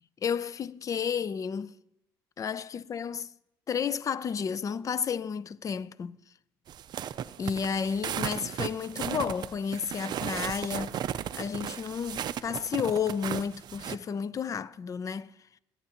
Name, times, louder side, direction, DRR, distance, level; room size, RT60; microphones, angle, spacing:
voice 1, 0.2-1.8 2.4-3.3 3.7-6.2 7.4-11.0 11.3-15.3, left 7 dB, 35° left, 0.5 m, -32 dB
sound 1, 6.7-14.0, right 10 dB, 50° right, 0.4 m, -35 dB
23.5 x 9.3 x 2.9 m
supercardioid pair, 85°, 9 cm